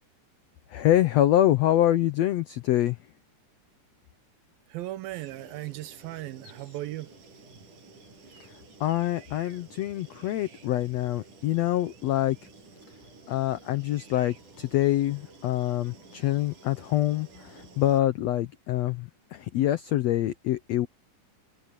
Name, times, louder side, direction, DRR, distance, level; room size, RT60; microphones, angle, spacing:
voice 1, 0.7-3.0 8.4-8.5 8.8-12.4 13.3-20.9, left 13 dB, 85° left, 1.4 m, -25 dB
voice 2, 4.7-7.1, right 16 dB, 85° right, 2.8 m, -37 dB
sound 1, 5.1-18.0, right 3 dB, 60° right, 9.4 m, -52 dB
omnidirectional pair, 4.0 m